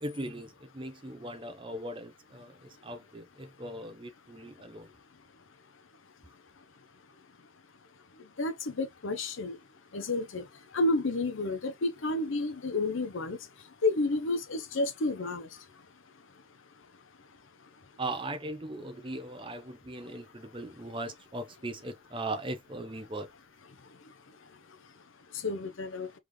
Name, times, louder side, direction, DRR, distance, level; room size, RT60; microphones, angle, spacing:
voice 1, 0.0-4.9 18.0-23.3, right 1 dB, 25° right, 0.7 m, -39 dB
voice 2, 8.4-9.6 9.9-10.4 10.7-13.4 13.8-15.5 25.4-26.1, left 2 dB, 70° left, 0.7 m, -30 dB
3.6 x 3.5 x 3.0 m
head